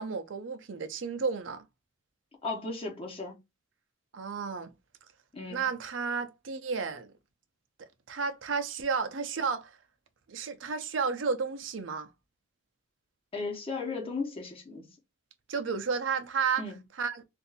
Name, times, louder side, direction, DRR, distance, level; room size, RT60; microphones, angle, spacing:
voice 1, 0.0-1.6 4.1-4.7 5.5-7.1 7.8-9.8 10.3-12.1 15.5-16.6 17.0-17.2, right 5 dB, 90° right, 0.5 m, -32 dB
voice 2, 2.4-3.4 5.3-5.6 13.3-14.9 16.6-16.8, left 3 dB, 30° left, 1.0 m, -36 dB
2.6 x 2.4 x 4.0 m
head